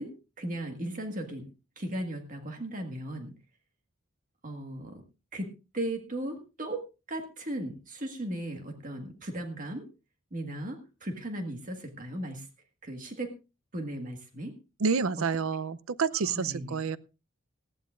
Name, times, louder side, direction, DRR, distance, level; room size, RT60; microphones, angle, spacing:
voice 1, 0.0-3.3 4.4-5.0 5.3-9.8 10.3-12.5 12.8-13.3 13.7-14.5 15.2-15.3 16.2-16.8, right 1 dB, 40° right, 1.7 m, -37 dB
voice 2, 14.8-17.0, right 5 dB, 85° right, 0.6 m, -28 dB
19.5 x 14.5 x 2.5 m
head